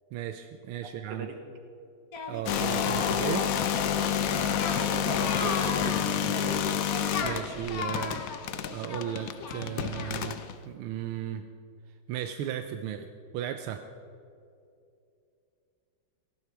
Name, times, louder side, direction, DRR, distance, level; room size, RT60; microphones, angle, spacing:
voice 1, 0.1-1.3 2.3-3.5 7.2-8.2 8.7-10.4 10.6-11.4 12.1-13.1 13.3-13.8, right 10 dB, 85° right, 7 dB, 1.5 m, -35 dB
voice 2, 0.8-1.4 4.3-6.8, right 3 dB, 60° right, 5 dB, 2.1 m, -39 dB
Singing, 2.1-10.5, left 4 dB, 50° left, 1.5 m, -37 dB
sound 1, 2.5-10.5, left 9 dB, 75° left, 0.7 m, -29 dB
18.0 x 15.0 x 4.7 m, 2.6 s
omnidirectional pair, 2.3 m